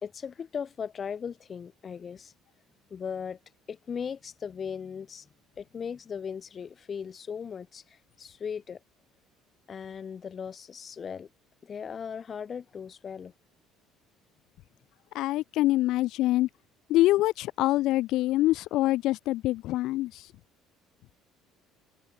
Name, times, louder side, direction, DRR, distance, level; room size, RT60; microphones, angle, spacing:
voice 1, 0.0-2.3 2.9-3.4 3.7-5.3 5.6-7.8 8.2-8.8 9.7-11.3 11.6-13.3, left 7 dB, 25° left, 3.2 m, -37 dB
voice 2, 15.1-16.5 16.9-20.2, left 16 dB, 55° left, 0.9 m, -25 dB
cardioid pair, 180°, 0 cm